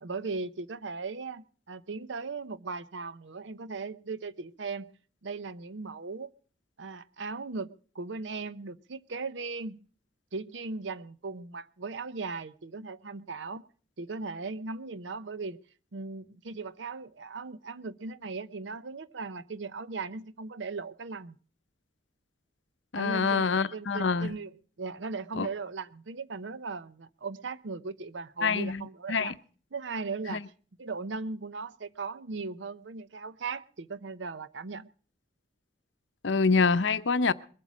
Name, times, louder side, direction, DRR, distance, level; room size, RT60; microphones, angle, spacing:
voice 1, 0.0-4.9 5.2-6.3 6.8-9.8 10.3-13.6 14.0-15.6 15.9-21.4 22.9-24.5 24.8-29.3 29.7-30.4 30.8-34.9, right 4 dB, 75° right, 0.7 m, -38 dB
voice 2, 22.9-24.3 25.4-25.5 28.4-29.3 30.3-30.4 36.2-37.3, left 4 dB, 75° left, 0.7 m, -26 dB
22.0 x 8.2 x 6.1 m
head